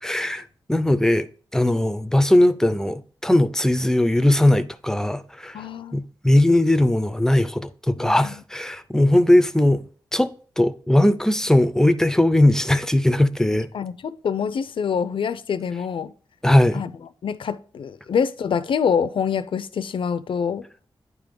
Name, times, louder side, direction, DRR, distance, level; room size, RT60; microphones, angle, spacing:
voice 1, 0.0-1.3 1.5-5.6 5.9-9.8 10.1-13.7 16.4-16.8, left 1 dB, 5° left, 0.4 m, -19 dB
voice 2, 5.5-6.0 8.0-8.4 13.7-16.1 16.7-16.9 17.2-20.7, left 7 dB, 80° left, 0.5 m, -26 dB
9.7 x 3.6 x 5.2 m
wide cardioid pair, 155°, 9 cm